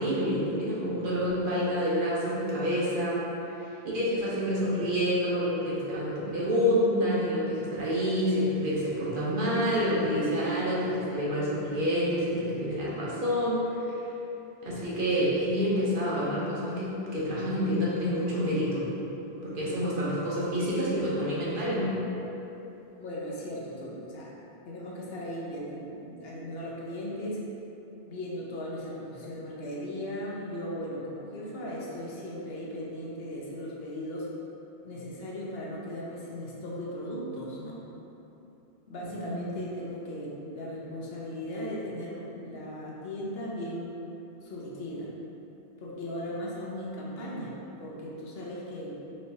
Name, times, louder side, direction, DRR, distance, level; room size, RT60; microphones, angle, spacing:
voice 1, 0.0-3.2 3.6-13.6 14.6-18.8 19.4-22.0 39.0-39.4, equal, 60° right, -7 dB, 0.9 m, -28 dB
voice 2, 23.0-24.3 24.7-27.4 28.1-34.3 34.8-37.8 38.9-44.0 44.4-45.1 45.8-49.0, equal, 70° left, -5 dB, 0.9 m, -37 dB
4.1 x 3.1 x 2.7 m, 3.0 s
omnidirectional pair, 1.1 m